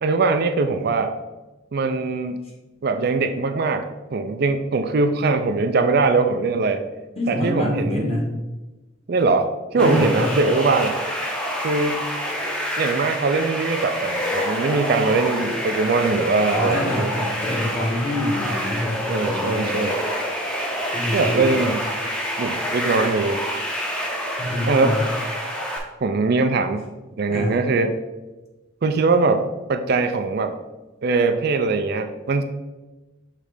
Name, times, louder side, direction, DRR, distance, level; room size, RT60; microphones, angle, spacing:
voice 1, 0.0-1.1 1.7-2.4 2.8-6.8 7.3-8.1 9.1-11.0 11.6-12.0 12.8-17.1 19.1-20.0 21.1-21.8 22.4-23.4 24.7-25.0 26.0-26.8 27.2-27.9 28.8-30.6 31.0-32.4, right 3 dB, 50° right, 7 dB, 0.4 m, -21 dB
voice 2, 7.1-8.3 9.8-10.4 16.5-19.8 20.9-21.8 24.4-25.0 27.3-27.6, left 1 dB, 30° left, -2 dB, 1.4 m, -26 dB
sound 1, 9.8-25.8, equal, 5° left, 0.7 m, -27 dB
6.5 x 3.2 x 5.0 m, 1.1 s
head